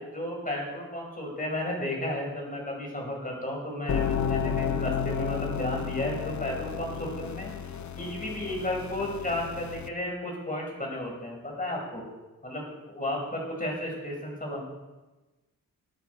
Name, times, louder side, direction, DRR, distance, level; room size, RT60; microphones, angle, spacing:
voice 1, 0.0-7.5 8.0-12.0 12.4-14.6, left 1 dB, 25° left, -1 dB, 5.5 m, -33 dB
sound 1, 3.9-9.9, left 7 dB, 55° left, 0.8 m, -32 dB
21.5 x 8.3 x 4.7 m, 1.1 s
wide cardioid pair, 85°, 34 cm